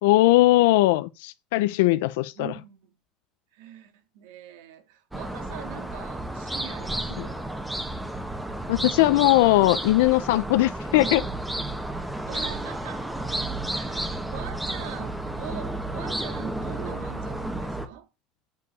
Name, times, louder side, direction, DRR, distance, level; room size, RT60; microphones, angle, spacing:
voice 1, 0.0-2.5 7.2-7.3 8.7-11.2, left 18 dB, 85° left, 0.6 m, -20 dB
voice 2, 2.3-2.8 3.5-7.4 10.9-11.2 12.3-13.2 13.7-18.1, right 10 dB, 85° right, 3.0 m, -42 dB
sound 1, 5.1-17.9, right 1 dB, 5° right, 1.8 m, -32 dB
9.0 x 5.5 x 8.0 m
supercardioid pair, 130°, 0 cm